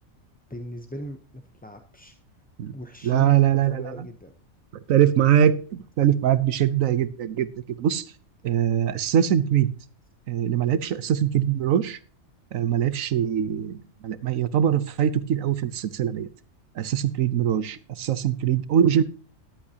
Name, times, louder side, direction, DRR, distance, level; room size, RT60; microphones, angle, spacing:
voice 1, 0.5-2.1 2.7-4.3, equal, 10° left, 6 dB, 0.6 m, -38 dB
voice 2, 3.0-4.1 4.7-8.0 8.4-9.7 10.3-12.0 12.5-16.3 16.7-19.0, right 9 dB, 80° right, 15 dB, 1.2 m, -22 dB
13.5 x 11.0 x 2.8 m, 0.40 s
omnidirectional pair, 1.4 m